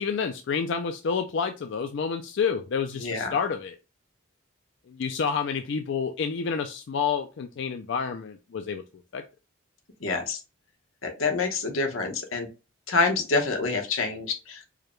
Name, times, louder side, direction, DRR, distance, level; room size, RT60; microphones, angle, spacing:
voice 1, 0.0-3.8 4.9-8.8 9.1-9.2, left 6 dB, 60° left, 6 dB, 0.4 m, -29 dB
voice 2, 3.0-3.3 10.0-10.4 11.0-12.5 12.9-14.6, left 3 dB, 80° left, 3 dB, 1.0 m, -27 dB
4.7 x 2.2 x 3.0 m, 0.29 s
head